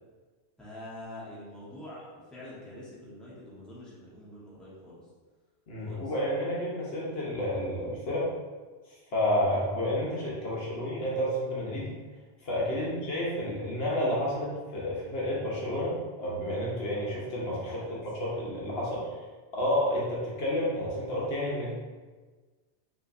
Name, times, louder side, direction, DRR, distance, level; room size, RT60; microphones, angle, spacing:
voice 1, 0.6-5.0 5.8-6.1 12.8-12.9 17.7-18.0, left 1 dB, ahead, -8 dB, 1.0 m, -45 dB
voice 2, 5.7-8.3 9.1-11.9 12.4-19.1 19.5-21.7, left 1 dB, 65° left, -6 dB, 1.2 m, -30 dB
5.5 x 3.0 x 2.6 m, 1.3 s
omnidirectional pair, 1.1 m